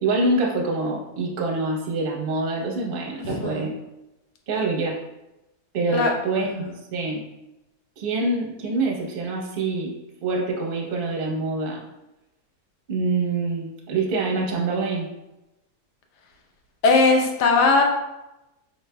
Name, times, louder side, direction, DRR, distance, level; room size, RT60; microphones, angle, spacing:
voice 1, 0.0-3.7 4.5-5.0 5.7-6.6 6.9-7.2 8.0-9.9 10.2-11.8 12.9-15.1, right 3 dB, 45° right, -2 dB, 0.8 m, -25 dB
voice 2, 3.2-3.7 5.9-6.1 6.4-6.5 16.8-17.8, left 3 dB, 85° left, 2 dB, 1.3 m, -19 dB
5.0 x 3.1 x 2.2 m, 0.94 s
omnidirectional pair, 1.7 m